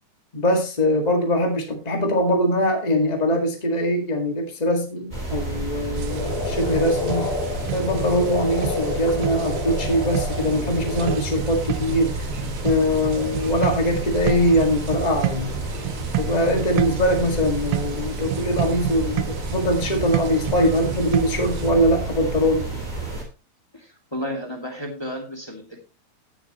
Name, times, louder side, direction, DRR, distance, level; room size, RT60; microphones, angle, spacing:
voice 1, 0.3-7.3 7.7-12.1 12.6-15.5 16.2-22.6, equal, 50° left, 3 dB, 0.5 m, -22 dB
sound 1, 5.1-23.2, right 1 dB, 10° right, 2.4 m, -30 dB
sound 2, 6.0-21.7, right 18 dB, 80° right, 2.5 m, -31 dB
Frog, 6.1-11.2, left 3 dB, 80° left, 5.3 m, -30 dB
voice 2, 23.7-25.8, equal, 10° left, 0 dB, 1.4 m, -32 dB
17.0 x 7.4 x 3.0 m, 0.30 s
omnidirectional pair, 4.5 m